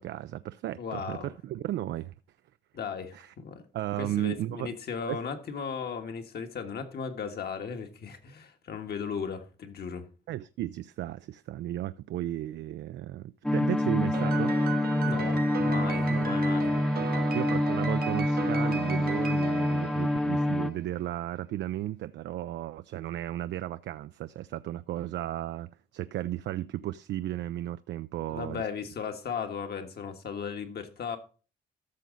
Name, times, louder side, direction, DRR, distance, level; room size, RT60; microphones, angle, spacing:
voice 1, 0.0-2.1 3.1-3.3 3.7-4.8 5.1-5.2 10.3-14.5 16.1-16.4 16.7-16.8 17.3-28.6, right 13 dB, 75° right, 0.4 m, -34 dB
voice 2, 0.8-1.3 2.7-3.6 4.0-10.1 15.0-17.2 28.3-31.2, left 6 dB, 60° left, 1.6 m, -36 dB
sound 1, 13.4-20.7, left 1 dB, 5° left, 0.6 m, -27 dB
Piano, 14.1-20.7, right 8 dB, 55° right, 0.8 m, -37 dB
13.5 x 6.2 x 3.9 m
cardioid pair, 85°, 18 cm